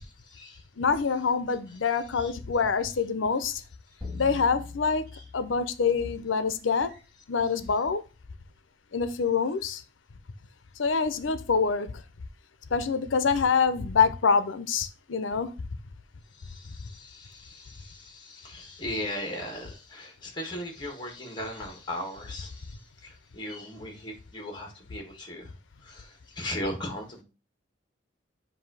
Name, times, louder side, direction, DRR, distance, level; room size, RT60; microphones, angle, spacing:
voice 1, 0.0-0.6 2.2-2.3 5.1-5.2 16.4-25.5 25.8-27.2, left 1 dB, 25° left, 1.6 m, -38 dB
voice 2, 0.8-3.6 4.1-5.0 5.3-6.9 7.3-8.0 8.9-9.8 10.8-11.9 12.7-15.5, left 5 dB, 90° left, 0.6 m, -25 dB
sound 1, 4.0-6.5, left 4 dB, 15° right, 2.4 m, -42 dB
7.5 x 2.7 x 4.7 m
head